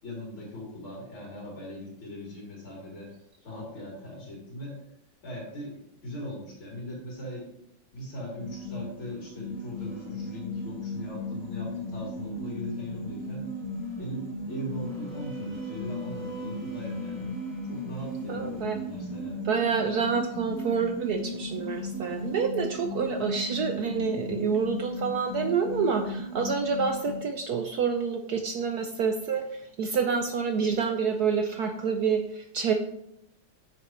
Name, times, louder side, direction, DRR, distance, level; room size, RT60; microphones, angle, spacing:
voice 1, 0.0-3.1 3.4-4.8 5.2-5.7 6.0-7.6 7.9-13.5 14.0-17.3 17.7-19.4, equal, 80° left, -4 dB, 4.1 m, -40 dB
sound 1, 8.4-27.2, left 2 dB, 40° left, 2.2 m, -36 dB
sound 2, 9.0-9.4 9.7-10.6 11.4-11.5 13.3-19.2 21.2-22.4, right 4 dB, 35° right, 3.2 m, -50 dB
voice 2, 18.3-18.8 19.4-32.7, right 6 dB, 65° right, 5 dB, 1.0 m, -28 dB
9.0 x 6.6 x 3.2 m, 0.78 s
omnidirectional pair, 2.2 m